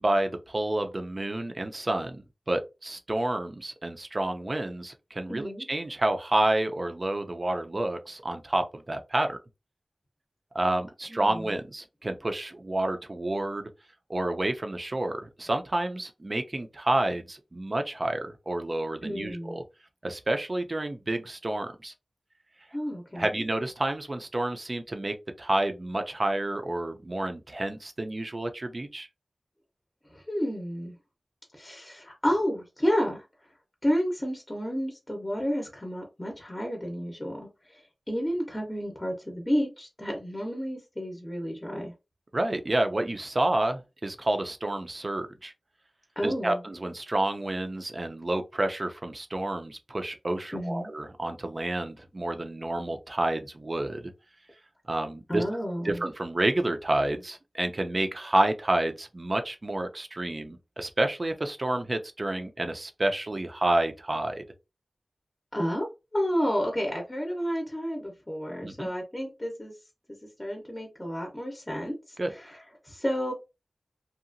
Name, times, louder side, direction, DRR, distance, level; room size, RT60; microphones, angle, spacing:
voice 1, 0.0-9.4 10.5-13.7 14.1-19.6 20.0-21.9 23.2-29.1 42.3-45.5 46.2-54.1 54.9-55.4 55.8-64.4 68.6-68.9 72.2-72.3, right 1 dB, 40° right, 0.5 m, -29 dB
voice 2, 5.3-5.7 11.1-11.5 19.0-19.6 22.7-23.4 30.1-30.9 31.5-33.3 33.8-41.9 46.2-46.6 50.5-50.9 55.3-56.0 65.5-65.9 66.1-69.7 70.4-73.3, equal, 20° left, 0.7 m, -31 dB
2.8 x 2.4 x 2.5 m
wide cardioid pair, 70°, 0 cm